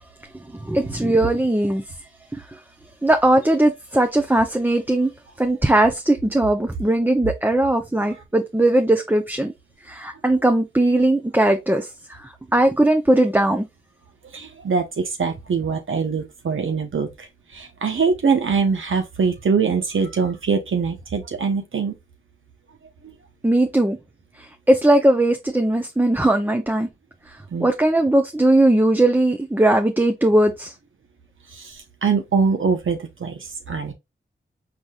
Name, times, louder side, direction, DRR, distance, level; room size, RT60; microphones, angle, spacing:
voice 1, 0.7-1.8 3.0-5.1 5.4-9.5 9.9-11.9 12.5-13.6 23.4-24.0 24.7-26.9 27.6-30.7, right 1 dB, 10° right, 0.7 m, -18 dB
voice 2, 14.3-17.3 17.5-21.9 23.0-23.2 27.5-27.7 31.5-33.9, right 5 dB, 80° right, 1.0 m, -23 dB
4.8 x 3.9 x 2.4 m
cardioid pair, 55°, 20 cm